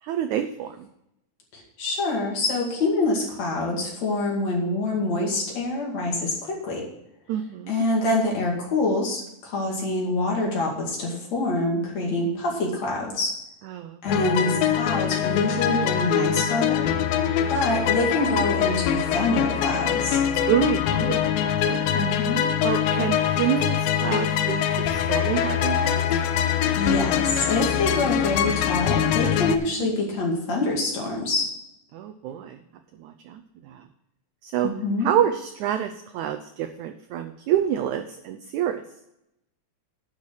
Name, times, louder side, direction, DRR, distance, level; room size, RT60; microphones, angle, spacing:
voice 1, 0.0-0.9 7.3-7.8 9.7-10.0 12.2-12.3 13.6-14.0 20.5-22.2 22.6-26.0 28.0-28.2 29.7-29.9 31.9-32.6 33.0-33.9 34.4-34.7 35.0-38.8, right 10 dB, 85° right, 9 dB, 1.7 m, -28 dB
voice 2, 1.5-6.8 7.7-13.4 14.0-16.9 17.5-20.2 21.9-22.4 26.7-31.5 34.6-35.1, left 2 dB, 50° left, -2 dB, 3.3 m, -25 dB
sound 1, 14.1-29.6, left 9 dB, 90° left, 2.4 m, -23 dB
10.5 x 5.7 x 6.3 m, 0.83 s
omnidirectional pair, 4.1 m